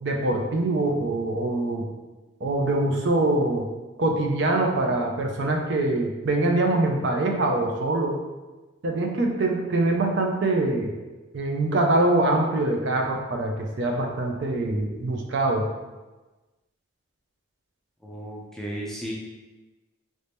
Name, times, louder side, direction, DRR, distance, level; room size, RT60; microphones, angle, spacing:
voice 1, 0.0-1.9 2.4-3.7 4.0-8.2 8.8-10.9 11.3-15.7, right 2 dB, 55° right, 1 dB, 0.5 m, -24 dB
voice 2, 18.0-19.1, right 1 dB, ahead, -4 dB, 0.4 m, -34 dB
3.2 x 2.7 x 3.4 m, 1.2 s
head